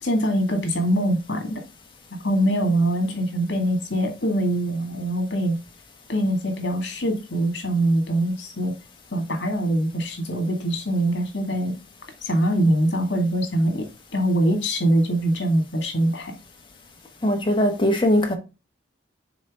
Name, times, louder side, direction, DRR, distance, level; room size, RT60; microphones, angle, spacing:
voice 1, 0.0-1.6 2.2-5.6 6.1-8.7 9.1-11.7 12.2-16.3, right 1 dB, 60° left, 2.1 m, -23 dB
voice 2, 17.2-18.4, equal, 25° left, 1.3 m, -20 dB
6.4 x 4.0 x 3.7 m
head